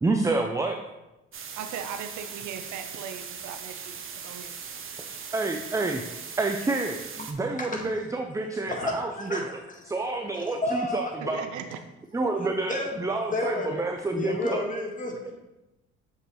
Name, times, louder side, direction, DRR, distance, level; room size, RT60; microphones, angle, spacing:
voice 1, 0.0-0.8 5.3-6.0 6.4-9.4 9.9-11.4 12.1-14.6, right 3 dB, 10° right, 4 dB, 0.4 m, -28 dB
sound 1, 1.3-7.3, right 6 dB, 40° right, 0.8 m, -40 dB
voice 2, 1.6-3.9 4.2-4.5 11.3-11.8, right 8 dB, 60° right, 8 dB, 0.6 m, -38 dB
voice 3, 8.7-9.5 10.3-11.1 12.7-13.0 13.3-13.8 14.1-15.3, left 2 dB, 25° left, 0 dB, 1.7 m, -31 dB
7.1 x 4.4 x 3.1 m, 1.0 s
hypercardioid pair, 60°, 33 cm